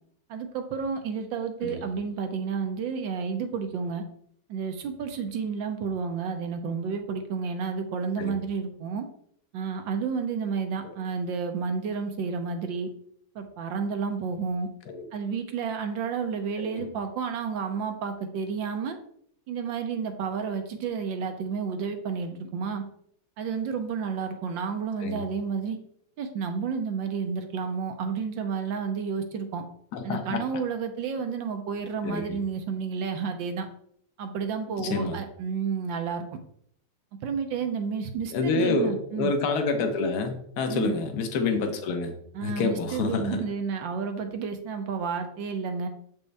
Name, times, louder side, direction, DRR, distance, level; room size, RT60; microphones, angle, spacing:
voice 1, 0.3-4.0 4.5-9.0 9.5-12.9 13.3-14.7 15.1-19.0 19.5-22.8 23.4-25.8 26.2-29.6 30.0-33.7 34.2-36.3 37.2-39.3 40.7-40.9 42.3-45.9, right 5 dB, 70° right, 6 dB, 1.4 m, -31 dB
voice 2, 29.9-30.4 32.0-32.4 34.8-35.2 38.3-42.1 42.4-43.4, left 4 dB, 60° left, 5 dB, 1.3 m, -28 dB
7.3 x 5.3 x 3.4 m, 0.66 s
omnidirectional pair, 2.2 m